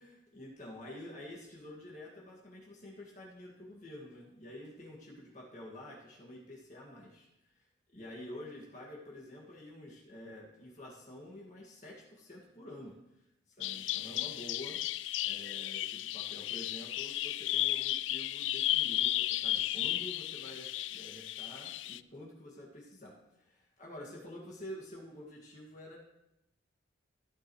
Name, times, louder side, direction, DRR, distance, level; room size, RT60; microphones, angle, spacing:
voice 1, 0.0-7.7 7.9-14.9 15.2-26.0, left 1 dB, 40° left, -3 dB, 2.1 m, -49 dB
Bird vocalization bird call bird song, 13.6-22.0, left 14 dB, 80° left, 0.4 m, -34 dB
15.5 x 9.8 x 3.2 m, 0.88 s
head